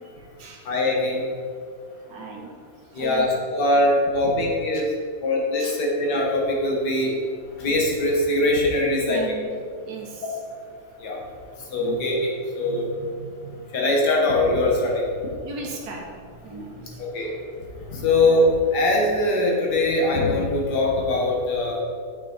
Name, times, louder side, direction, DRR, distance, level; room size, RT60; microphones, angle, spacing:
voice 1, 0.7-1.2 3.0-3.3 3.5-4.9 5.2-7.1 7.6-9.4 11.0-11.2 11.7-12.9 13.7-15.1 17.1-17.3 17.9-21.8, left 1 dB, 90° left, -2 dB, 1.8 m, -22 dB
voice 2, 2.1-2.5 2.9-3.3 4.7-4.8 5.6-5.7 9.1-9.5 9.8-10.2 11.7-12.0 12.6-13.6 15.4-16.1 16.4-17.1 18.0-18.1, right 4 dB, 75° right, 0 dB, 1.6 m, -37 dB
8.2 x 5.0 x 4.0 m, 2.2 s
omnidirectional pair, 1.7 m